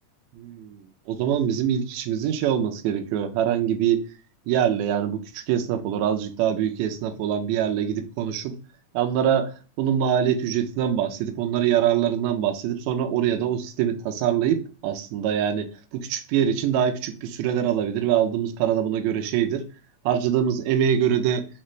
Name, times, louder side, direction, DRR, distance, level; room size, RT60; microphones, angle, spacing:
voice 1, 0.3-4.0 4.5-8.6 8.9-19.7 20.1-21.5, right 9 dB, 80° right, 1.7 m, -24 dB
5.5 x 2.4 x 3.1 m
omnidirectional pair, 3.7 m